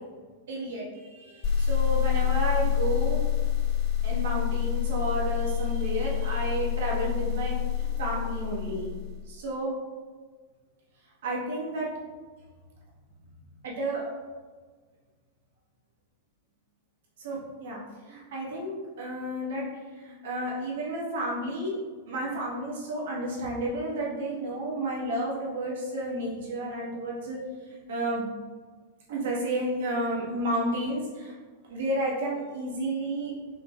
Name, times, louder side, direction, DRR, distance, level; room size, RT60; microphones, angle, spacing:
voice 1, 0.5-3.2 4.0-8.9 9.3-9.7 11.2-11.9 13.6-14.1 17.2-17.8 18.1-19.7 19.9-21.7 22.1-27.4 27.7-28.3 29.1-31.3 31.7-33.3, right 1 dB, 60° right, -4 dB, 1.4 m, -31 dB
sound 1, 1.4-9.2, left 10 dB, 40° left, 1.0 m, -27 dB
5.4 x 3.9 x 2.4 m, 1.4 s
figure-of-eight pair, 95°, 0 cm